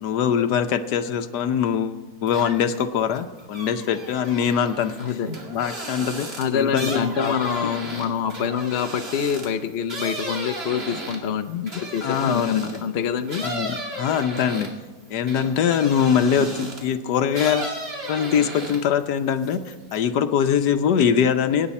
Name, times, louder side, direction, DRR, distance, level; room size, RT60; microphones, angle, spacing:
voice 1, 0.0-4.9 5.5-6.3 6.5-7.3 12.0-12.8 13.4-14.7 15.1-17.7 18.1-21.7, left 8 dB, 70° left, 9 dB, 1.3 m, -22 dB
sound 1, 2.3-2.8 3.1-12.9 13.3-16.9 17.3-19.0 19.3-20.0, right 1 dB, 35° right, 2.4 m, -35 dB
voice 2, 6.4-13.4 16.4-16.5, left 7 dB, 55° left, 8 dB, 0.7 m, -26 dB
23.0 x 9.9 x 4.2 m, 1.3 s
omnidirectional pair, 1.9 m